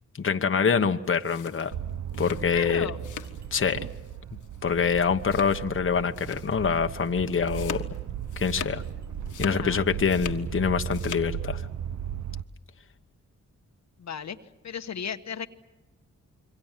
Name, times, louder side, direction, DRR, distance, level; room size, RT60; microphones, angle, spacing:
voice 1, 0.2-1.7 2.2-2.9 3.5-3.9 4.6-7.8 8.4-8.8 9.4-11.6, left 6 dB, 40° left, 6 dB, 1.2 m, -25 dB
sound 1, 1.1-3.5 3.8-4.2 4.4-4.6 5.2-5.8 6.1-6.6 6.9-8.9 9.2-10.5 10.8-11.3, left 8 dB, 80° left, 1.6 m, -41 dB
sound 2, 1.7-12.4, right 10 dB, 65° right, 0.9 m, -36 dB
voice 2, 2.3-3.0 9.5-9.9 14.0-14.4 14.6-15.5, left 7 dB, 60° left, 8 dB, 1.3 m, -35 dB
27.0 x 24.0 x 7.5 m, 1.2 s
cardioid pair, 80°, 30 cm